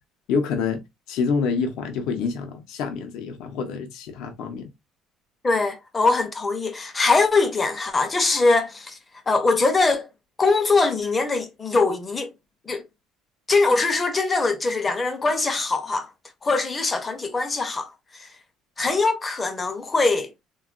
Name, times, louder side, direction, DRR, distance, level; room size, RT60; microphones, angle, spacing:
voice 1, 0.3-0.8 1.1-4.7, left 5 dB, 65° left, 0.6 m, -27 dB
voice 2, 5.4-9.0 9.3-10.1 10.4-12.3 12.7-12.8 13.5-16.1 16.4-18.3 18.8-20.3, left 3 dB, 15° left, 0.5 m, -22 dB
3.5 x 2.2 x 2.3 m
cardioid pair, 170°, 0 cm